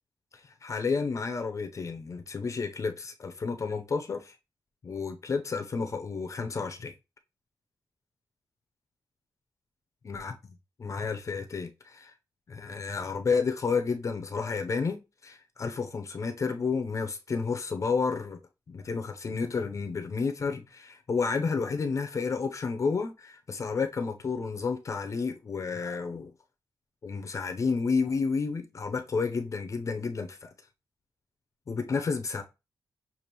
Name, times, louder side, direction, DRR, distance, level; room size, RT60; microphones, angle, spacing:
voice 1, 0.6-4.3 4.8-6.9 10.1-10.3 10.8-12.1 12.5-18.4 18.7-26.3 27.0-30.5 31.7-32.4, left 5 dB, 40° left, 0.6 m, -31 dB
6.7 x 2.5 x 3.0 m
wide cardioid pair, 135°, 8 cm